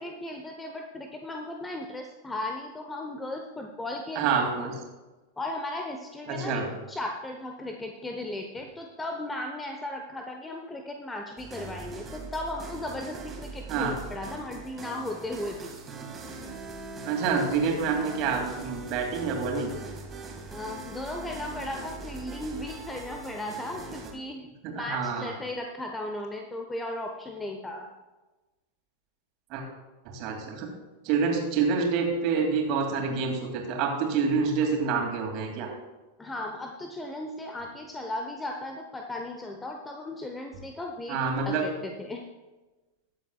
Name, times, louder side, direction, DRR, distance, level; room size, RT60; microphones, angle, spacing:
voice 1, 0.0-4.4 5.4-6.6 6.9-15.8 20.5-27.9 36.2-41.2 41.5-42.2, left 1 dB, 10° left, 3 dB, 0.8 m, -36 dB
voice 2, 4.2-4.8 6.3-6.6 13.7-13.9 17.1-19.7 24.6-25.3 29.5-29.6 30.1-30.7 31.0-35.7 41.1-41.6, right 5 dB, 40° right, 1 dB, 2.5 m, -27 dB
sound 1, 11.4-24.1, right 3 dB, 20° right, 2.0 m, -41 dB
22.0 x 7.5 x 2.3 m, 1.2 s
figure-of-eight pair, 90°, 0 cm